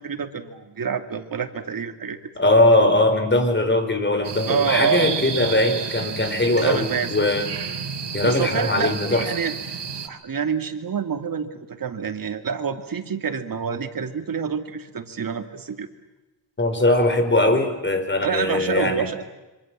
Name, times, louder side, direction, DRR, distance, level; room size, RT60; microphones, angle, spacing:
voice 1, 0.0-2.2 4.5-5.1 6.6-7.1 8.2-9.5 10.0-15.9 18.2-19.2, right 6 dB, 50° right, 6 dB, 2.6 m, -27 dB
voice 2, 2.4-7.5 8.1-9.3 16.6-19.1, left 2 dB, 25° left, 8 dB, 4.8 m, -20 dB
sound 1, 4.2-10.1, right 6 dB, 70° right, 3.2 m, -31 dB
26.5 x 25.5 x 7.5 m, 1.1 s
wide cardioid pair, 115°, 42 cm